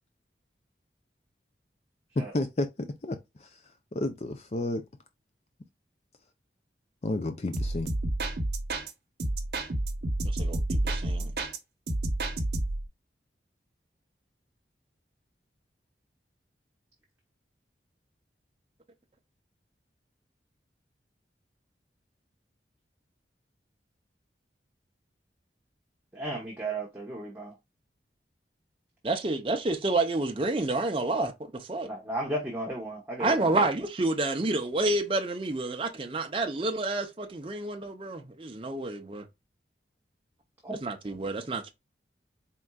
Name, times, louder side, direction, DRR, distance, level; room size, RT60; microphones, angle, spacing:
voice 1, 2.2-3.6 3.9-4.8 7.0-7.9, left 2 dB, 35° left, 0.5 m, -31 dB
sound 1, 7.5-8.9 9.2-11.6 11.9-12.9, right 1 dB, 60° right, 0.8 m, -30 dB
voice 2, 10.4-11.3 29.0-31.9 33.2-39.2 40.8-41.7, right 2 dB, 30° right, 0.6 m, -29 dB
voice 3, 26.1-27.5 31.8-33.5 40.6-40.8, right 1 dB, 10° right, 1.0 m, -34 dB
4.4 x 3.7 x 2.2 m
head